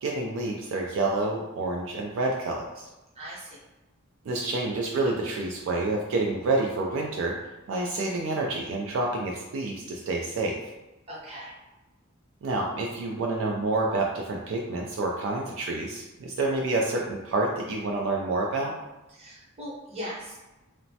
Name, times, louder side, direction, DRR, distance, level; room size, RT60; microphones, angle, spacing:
voice 1, 0.0-2.9 4.3-7.4 7.7-10.6 12.4-18.7, right 2 dB, 65° right, -1 dB, 0.3 m, -28 dB
voice 2, 3.2-3.6 11.1-11.5 19.1-20.4, equal, 30° right, -5 dB, 0.8 m, -39 dB
3.0 x 2.1 x 2.7 m, 1.0 s
head